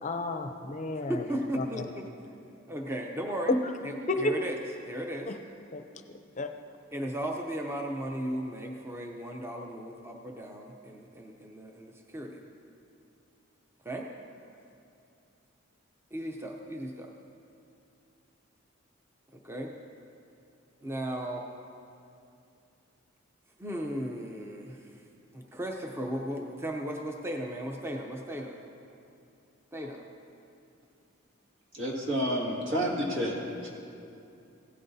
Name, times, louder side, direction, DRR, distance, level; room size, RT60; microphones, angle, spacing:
voice 1, 0.0-1.3 1.6-1.8 3.5-3.6 4.1-4.3 5.3-5.4 5.7-5.8 6.4-6.5, left 2 dB, 35° left, 7 dB, 0.5 m, -30 dB
voice 2, 1.1-2.1 2.7-3.5 3.8-4.5 4.8-5.3 6.9-12.4 13.8-14.1 16.1-17.1 19.4-19.7 20.8-21.5 23.6-24.9 25.3-28.6 29.7-30.0, equal, 10° right, 1 dB, 0.5 m, -36 dB
voice 3, 31.7-33.4 33.6-33.7, equal, 70° right, -2 dB, 2.0 m, -29 dB
16.0 x 11.5 x 2.7 m, 2.6 s
head